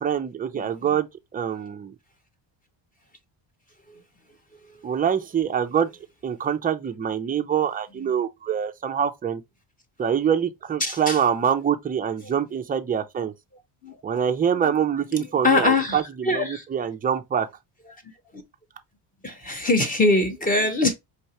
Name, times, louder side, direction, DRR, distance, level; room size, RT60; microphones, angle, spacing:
voice 1, 0.0-1.9 4.8-5.9 6.2-9.4 10.0-13.3 14.0-17.5, right 8 dB, 20° right, 0.4 m, -25 dB
voice 2, 10.8-11.2 12.2-12.4 13.8-14.0 14.6-14.8 15.2-16.6 18.3-18.4 19.2-20.9, left 2 dB, 15° left, 1.0 m, -23 dB
4.5 x 3.2 x 2.8 m
cardioid pair, 145°, 48 cm